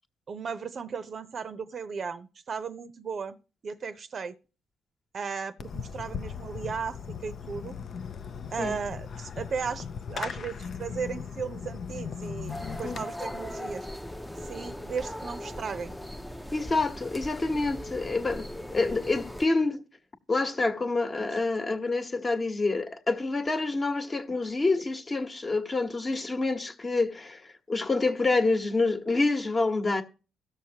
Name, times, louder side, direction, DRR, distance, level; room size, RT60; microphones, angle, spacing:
voice 1, 0.3-3.4 3.6-4.3 5.1-7.8 8.5-13.9 14.5-15.9, right 6 dB, 50° right, 0.7 m, -36 dB
Fireworks, 5.6-13.0, left 6 dB, 50° left, 0.5 m, -38 dB
sound 1, 12.5-19.5, left 1 dB, 5° left, 0.6 m, -39 dB
voice 2, 16.5-18.5 18.7-19.8 20.3-30.0, left 3 dB, 30° left, 1.1 m, -27 dB
17.0 x 6.5 x 2.8 m
cardioid pair, 90°, 0 cm